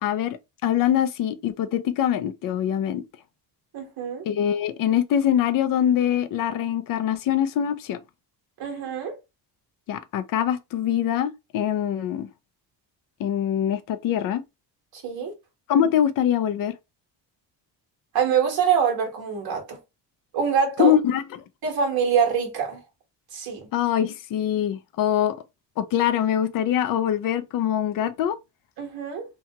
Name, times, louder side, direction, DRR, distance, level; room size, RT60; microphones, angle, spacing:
voice 1, 0.0-3.0 4.3-8.0 9.9-12.3 13.2-14.4 15.7-16.7 20.8-21.2 23.7-25.4 25.8-28.4, left 10 dB, 50° left, 0.4 m, -23 dB
voice 2, 3.7-4.3 8.6-9.2 14.9-15.3 18.1-19.8 20.3-20.9 21.6-22.8 23.3-23.7 28.8-29.2, right 7 dB, 55° right, 1.3 m, -24 dB
2.8 x 2.3 x 2.8 m
cardioid pair, 145°, 44 cm